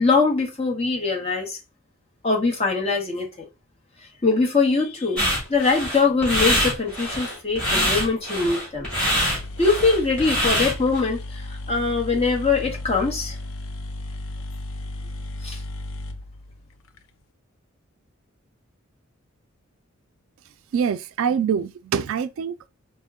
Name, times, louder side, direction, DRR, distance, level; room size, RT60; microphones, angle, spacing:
voice 1, 0.0-1.6 2.2-3.5 4.2-5.2 5.5-8.9 9.6-11.4 11.7-13.4 15.4-15.6, left 4 dB, 30° left, 1.0 m, -22 dB
sound 1, 5.2-11.0, equal, 5° left, 2.1 m, -24 dB
sound 2, 8.9-9.0 9.2-17.0, left 2 dB, 65° left, 0.4 m, -35 dB
voice 2, 20.7-22.7, right 7 dB, 70° right, 0.3 m, -25 dB
4.3 x 2.1 x 3.5 m
head